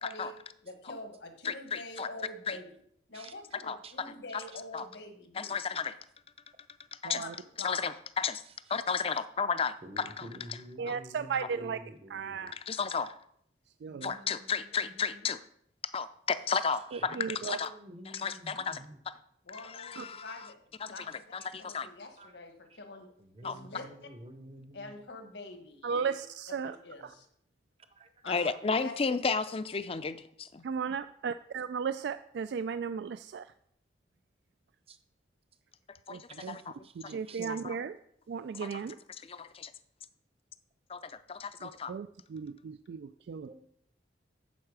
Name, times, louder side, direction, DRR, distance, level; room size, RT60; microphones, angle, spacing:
voice 1, 0.0-0.4 0.6-2.7 3.1-5.6 7.1-7.9 19.4-21.2 21.6-23.1 23.4-23.8 24.7-26.1 26.5-27.3 28.2-28.5 28.8-28.9, left 2 dB, 75° left, 1.5 m, -45 dB
voice 2, 1.4-2.1 2.5-2.6 3.6-4.1 4.7-4.8 5.4-6.0 7.0-7.2 7.6-8.4 8.7-10.3 10.9-11.0 12.5-13.1 14.0-15.4 15.9-17.7 18.1-18.8 19.5-20.4 20.8-21.9 23.4-23.6 28.3-30.6 36.1-37.1 37.5-37.8 38.6-38.8 39.3-39.7 40.9-41.9, left 5 dB, 30° left, 0.5 m, -33 dB
voice 3, 7.0-7.3 10.8-11.8 12.1-12.5 13.8-14.1 16.9-17.6 20.0-20.1 25.8-26.8 27.0-27.1 30.6-33.5 36.1-36.6 36.9-38.0 38.3-39.0 41.6-43.6, right 6 dB, 70° right, 0.3 m, -35 dB
voice 4, 8.2-8.8 9.1-9.2 9.8-12.6 13.9-15.3 16.5-19.0 22.2-22.4 22.7-22.8 23.2-25.0 27.9-28.1 34.9-35.0 36.4-37.4 43.5-43.6, right 1 dB, 35° right, 0.7 m, -50 dB
9.3 x 7.3 x 4.8 m
head